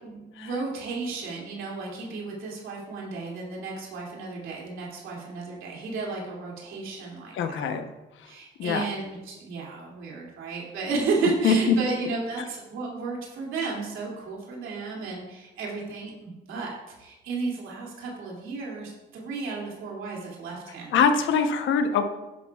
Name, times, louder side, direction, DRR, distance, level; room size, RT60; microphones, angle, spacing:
voice 1, 0.0-7.7 8.2-20.9, right 3 dB, 85° right, -3 dB, 2.6 m, -33 dB
voice 2, 7.3-7.9 8.2-8.3 8.6-8.9 11.4-11.8 20.9-22.0, left 6 dB, 75° left, 7 dB, 0.9 m, -23 dB
11.0 x 10.5 x 2.4 m, 1.1 s
cardioid pair, 90°, 20 cm